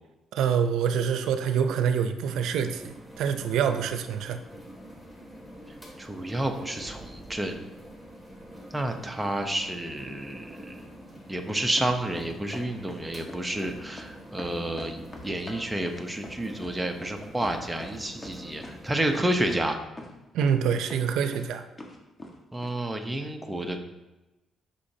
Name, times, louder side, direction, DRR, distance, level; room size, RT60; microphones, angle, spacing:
voice 1, 0.3-4.4 20.3-21.7, right 7 dB, 85° right, 9 dB, 0.6 m, -26 dB
sound 1, 2.3-19.6, equal, 10° left, 2.3 m, -46 dB
voice 2, 6.0-7.6 8.7-10.9 11.3-19.8 22.5-23.8, right 1 dB, 10° right, 4 dB, 0.8 m, -30 dB
sound 2, 11.8-13.0 13.3-14.1 14.4-18.0 18.2-18.8 19.1-19.2 19.5-19.6 20.0-20.1 20.4-20.6 20.9-21.4 21.8-22.3 22.6-22.7, left 1 dB, 25° left, 1.3 m, -42 dB
8.3 x 5.7 x 2.8 m, 1.0 s
cardioid pair, 90°, 0 cm